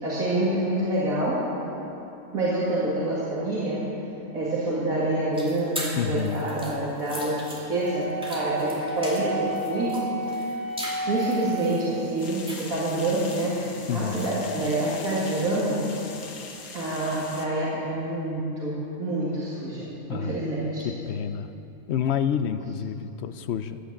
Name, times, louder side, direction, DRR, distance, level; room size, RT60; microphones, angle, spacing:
voice 1, 0.0-1.4 2.3-3.9 4.3-10.0 10.3-10.5 11.1-13.6 13.9-15.8 16.7-20.9, right 1 dB, 80° right, -7 dB, 2.5 m, -27 dB
sound 1, 5.3-15.3, equal, 5° right, 2.3 m, -40 dB
voice 2, 5.9-6.5 13.9-14.2 20.1-21.5 21.9-23.8, left 8 dB, 60° left, 11 dB, 0.8 m, -29 dB
Wind instrument woodwind instrument, 7.8-11.9, right 2 dB, 20° right, 4.5 m, -32 dB
sound 2, 12.2-17.5, left 4 dB, 90° left, 1.7 m, -41 dB
15.5 x 10.0 x 7.2 m, 2.9 s
omnidirectional pair, 1.5 m